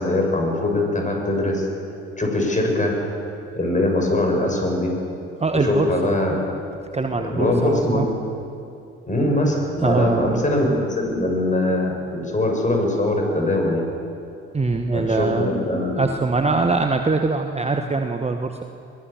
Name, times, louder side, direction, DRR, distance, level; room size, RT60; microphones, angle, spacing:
voice 1, 0.0-1.7 2.2-2.9 3.5-5.0 5.5-6.4 7.3-8.0 9.1-13.8 14.9-16.0, left 1 dB, 25° left, 1 dB, 7.3 m, -22 dB
voice 2, 5.4-6.1 6.9-8.1 9.8-10.4 14.5-15.5 16.0-18.6, right 3 dB, 20° right, 5 dB, 1.3 m, -22 dB
22.5 x 17.0 x 7.3 m, 2.6 s
hypercardioid pair, 50°, 32 cm